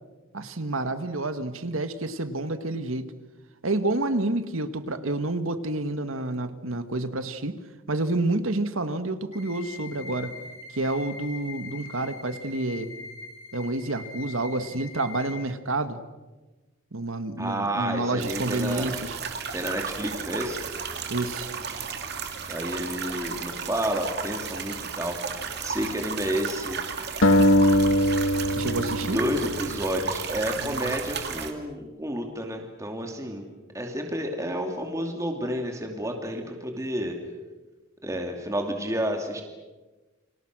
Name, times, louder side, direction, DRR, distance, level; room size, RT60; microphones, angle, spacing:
voice 1, 0.3-3.1 3.6-7.6 7.9-10.3 10.7-12.9 13.5-16.0 16.9-19.2 21.1-21.5 28.6-29.2 30.6-31.0, right 2 dB, 85° right, 10 dB, 1.8 m, -29 dB
sound 1, 9.3-15.3, left 4 dB, 30° left, 7.3 m, -42 dB
voice 2, 17.4-18.9 19.5-20.6 22.5-26.8 29.0-33.4 33.7-37.2 38.0-39.4, equal, 15° right, 3 dB, 2.7 m, -30 dB
sound 2, 18.2-31.5, right 6 dB, 55° right, 2.7 m, -34 dB
sound 3, 27.2-30.4, equal, 80° left, 1.5 m, -22 dB
30.0 x 26.0 x 6.2 m, 1.2 s
head